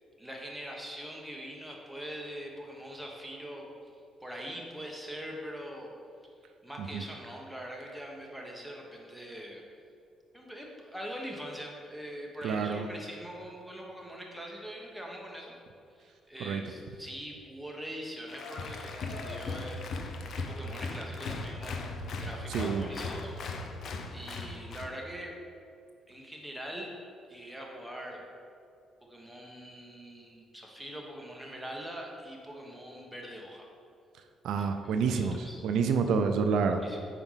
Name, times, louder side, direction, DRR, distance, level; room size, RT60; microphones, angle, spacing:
voice 1, 0.2-3.9 4.2-5.9 6.6-9.6 10.3-15.5 15.9-23.4 24.1-25.3 26.1-26.9 27.3-28.2 29.0-33.6 34.5-35.7 36.8-37.0, equal, ahead, -1 dB, 1.2 m, -43 dB
voice 2, 12.4-12.9 16.4-16.6 22.5-22.9 34.4-35.4 35.6-36.8, right 5 dB, 80° right, 7 dB, 0.4 m, -28 dB
Applause, 18.3-24.9, left 3 dB, 60° left, 0.6 m, -38 dB
5.0 x 4.4 x 5.6 m, 2.4 s
cardioid pair, 90°, 0 cm